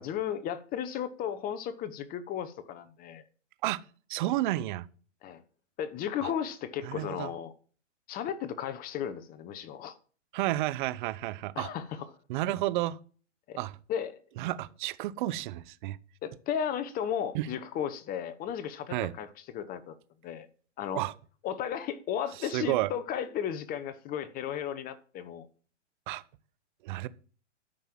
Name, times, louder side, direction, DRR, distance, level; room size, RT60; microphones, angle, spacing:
voice 1, 0.0-3.2 5.2-5.4 5.8-7.5 8.1-10.0 11.6-12.1 13.5-13.6 13.9-14.2 16.2-19.3 19.5-19.9 20.2-20.5 20.8-21.0 21.4-25.5, left 9 dB, 25° left, 1.0 m, -34 dB
voice 2, 4.1-4.9 6.2-6.3 6.8-7.3 10.3-11.7 12.3-13.0 13.6-13.8 14.4-16.0 17.3-17.5 18.9-19.1 20.9-21.1 22.4-22.9 26.1-26.2 26.8-27.1, right 15 dB, 40° right, 0.8 m, -31 dB
12.5 x 5.6 x 7.4 m
hypercardioid pair, 130°, 37 cm